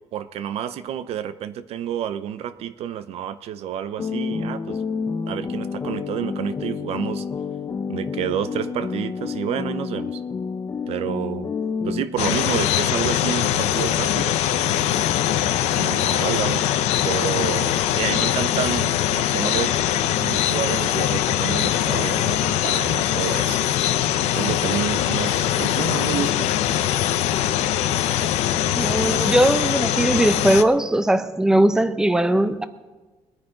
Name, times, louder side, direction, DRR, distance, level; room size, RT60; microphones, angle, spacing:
voice 1, 0.1-4.8 5.3-7.2 7.9-10.2 10.9-11.5 11.8-15.0 15.7-16.7 17.0-19.9 20.2-23.7 24.3-26.5, right 10 dB, 65° right, 0.7 m, -29 dB
sound 1, 4.0-12.0, left 5 dB, 30° left, 0.7 m, -29 dB
sound 2, 12.2-30.6, left 12 dB, 90° left, 0.7 m, -22 dB
voice 2, 28.7-32.6, right 1 dB, 5° right, 0.7 m, -19 dB
21.5 x 9.8 x 3.8 m
cardioid pair, 125°, 11 cm